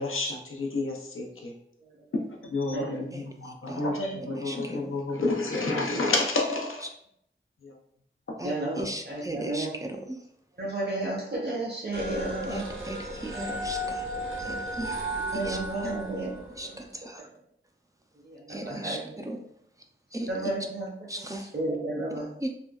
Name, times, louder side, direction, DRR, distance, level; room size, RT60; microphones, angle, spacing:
voice 1, 0.0-1.5 2.1-6.9 7.6-7.8 8.3-8.4, left 2 dB, 85° left, 0 dB, 0.6 m, -30 dB
voice 2, 2.7-3.0 4.0-4.1 8.4-9.7 10.6-12.6 15.3-16.3 16.6-16.7 18.5-19.0 20.3-20.9 21.5-22.3, right 2 dB, 55° right, -3 dB, 1.1 m, -32 dB
voice 3, 4.4-4.9 8.4-10.2 12.5-14.1 14.4-15.0 15.3-15.9 16.6-17.2 18.5-19.4 20.1-20.5 21.1-21.5 22.4-22.5, right 1 dB, 15° right, 3 dB, 0.4 m, -37 dB
sound 1, 11.9-16.8, equal, 80° right, 0.7 m, -34 dB
3.4 x 2.2 x 2.2 m, 0.68 s
wide cardioid pair, 40°, 21 cm